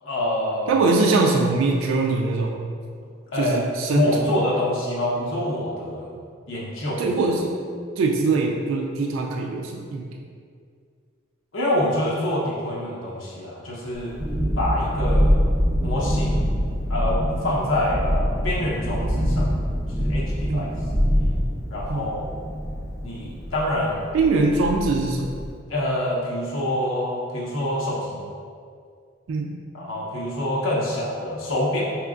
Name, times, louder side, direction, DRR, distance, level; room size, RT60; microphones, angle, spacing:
voice 1, 0.0-0.8 3.3-3.6 3.9-6.1 6.5-7.1 11.5-14.2 14.6-15.4 15.8-16.6 16.9-19.5 19.9-20.7 21.7-22.4 23.0-24.1 25.7-28.3 29.7-32.0, left 1 dB, 75° left, -5 dB, 0.7 m, -26 dB
voice 2, 0.7-2.6 3.3-4.3 7.0-7.6 8.0-10.1 15.2-15.3 20.5-20.7 21.9-22.2 24.1-25.3 29.3-29.6, right 3 dB, 70° right, 1 dB, 0.3 m, -22 dB
Thunderstorm, 13.9-25.5, equal, 15° right, 0.5 m, -24 dB
4.4 x 3.0 x 2.4 m, 2.2 s
head